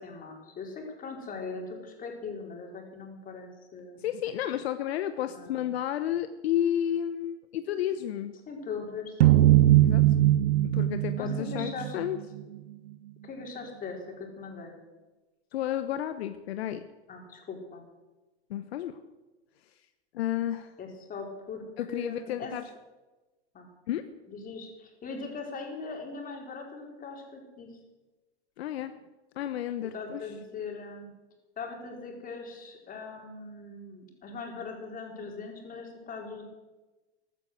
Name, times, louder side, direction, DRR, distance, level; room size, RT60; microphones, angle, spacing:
voice 1, 0.0-4.0 5.3-5.8 8.5-9.4 11.2-12.0 13.2-14.7 17.1-17.8 20.8-22.5 23.5-23.7 24.3-27.7 29.8-31.1 31.6-36.4, left 4 dB, 25° left, 1 dB, 4.7 m, -40 dB
voice 2, 4.0-8.3 9.8-10.1 10.7-12.2 15.5-16.9 18.5-19.0 20.1-20.7 21.8-22.6 23.9-24.0 28.6-28.9 29.4-30.2, left 11 dB, 70° left, 10 dB, 1.1 m, -31 dB
sound 1, 9.2-12.4, right 14 dB, 70° right, 0.8 m, -21 dB
15.0 x 12.0 x 7.9 m, 1.2 s
hypercardioid pair, 120°, 33 cm